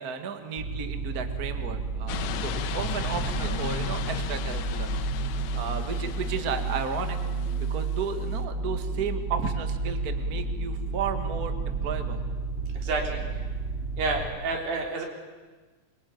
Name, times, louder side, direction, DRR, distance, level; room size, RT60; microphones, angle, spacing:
voice 1, 0.0-4.9 5.5-7.2 7.6-12.2, right 6 dB, 40° right, 7 dB, 1.5 m, -34 dB
sound 1, 0.6-14.3, right 3 dB, 15° right, 4.1 m, -31 dB
sound 2, 2.1-8.4, left 11 dB, 85° left, 2.8 m, -36 dB
voice 2, 12.8-13.2 14.0-15.1, right 3 dB, 90° right, 1 dB, 5.3 m, -30 dB
23.5 x 23.0 x 9.4 m, 1.3 s
omnidirectional pair, 4.0 m